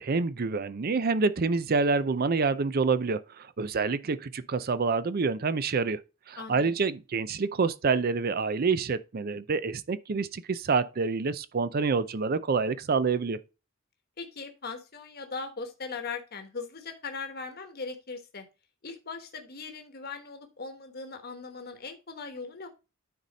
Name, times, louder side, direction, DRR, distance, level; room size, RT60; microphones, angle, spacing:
voice 1, 0.0-6.0 6.3-13.4, right 4 dB, 50° right, 0.5 m, -27 dB
voice 2, 6.4-6.9 14.2-18.4 18.8-22.7, left 4 dB, 50° left, 1.2 m, -39 dB
9.5 x 4.2 x 4.0 m
head